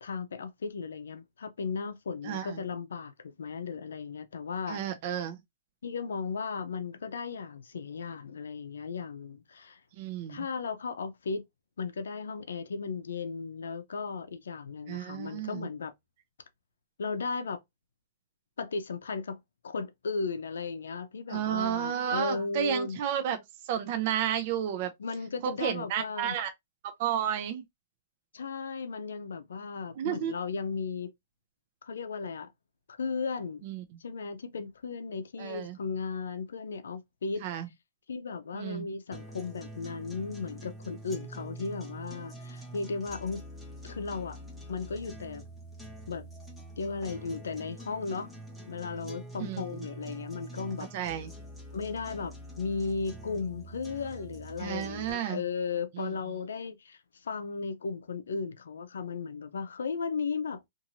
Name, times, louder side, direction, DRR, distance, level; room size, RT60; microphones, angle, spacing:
voice 1, 0.0-4.8 5.8-9.8 10.3-11.5 11.8-15.9 17.0-17.6 18.6-23.0 25.0-26.4 28.3-31.1 31.8-32.5 32.9-33.6 34.0-37.4 38.1-43.4 43.8-44.4 44.7-45.4 46.1-46.2 46.8-48.3 48.7-50.9 51.7-60.6, left 4 dB, 90° left, 0.6 m, -35 dB
voice 2, 2.2-2.6 4.7-5.4 10.0-10.4 14.9-15.7 21.3-23.4 23.6-24.9 25.4-26.5 26.8-27.6 30.0-30.3 33.6-33.8 35.4-35.8 37.4-37.7 38.5-38.9 49.4-49.8 50.9-51.3 54.6-55.4 56.0-56.1, right 10 dB, 45° right, 0.5 m, -32 dB
sound 1, 39.1-55.1, right 1 dB, 5° right, 0.8 m, -45 dB
2.6 x 2.6 x 2.9 m
hypercardioid pair, 155°, 0 cm